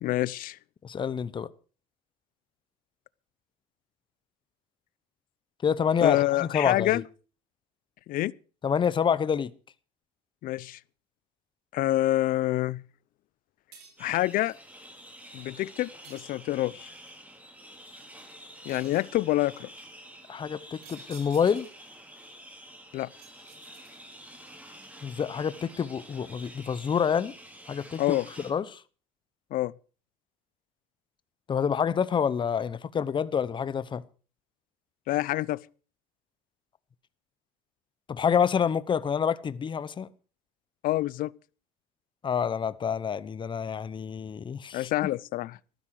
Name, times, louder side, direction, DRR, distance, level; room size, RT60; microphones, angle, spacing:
voice 1, 0.0-0.6 6.0-7.0 8.1-8.3 10.4-10.8 11.7-12.8 14.0-14.5 15.3-16.9 18.7-19.7 22.9-23.1 28.0-28.3 29.5-29.7 35.1-35.6 40.8-41.3 44.7-45.6, left 16 dB, 55° left, 0.6 m, -27 dB
voice 2, 0.8-1.5 5.6-7.0 8.6-9.5 20.3-21.7 25.0-27.3 27.7-28.8 31.5-34.0 38.1-40.1 42.2-44.9, left 7 dB, 30° left, 0.9 m, -27 dB
sound 1, 13.7-14.2 16.0-16.8 18.7-19.2 20.8-21.9 23.2-24.2, right 7 dB, 65° right, 4.3 m, -53 dB
sound 2, 14.0-28.5, right 1 dB, 10° right, 3.3 m, -48 dB
14.5 x 12.5 x 4.8 m
supercardioid pair, 105°, 17 cm